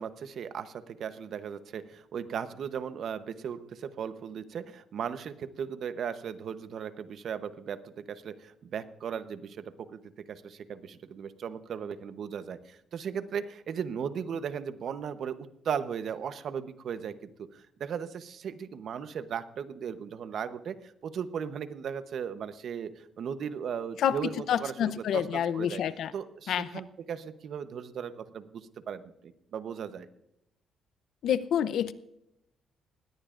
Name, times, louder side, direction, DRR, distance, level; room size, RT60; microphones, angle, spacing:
voice 1, 0.0-10.0 10.3-25.8 26.1-30.1, right 7 dB, 65° right, 11 dB, 0.9 m, -37 dB
voice 2, 24.5-26.1 26.5-26.7 31.2-31.9, left 9 dB, 75° left, 15 dB, 0.6 m, -28 dB
19.5 x 17.0 x 2.5 m, 0.84 s
cardioid pair, 90°, 0 cm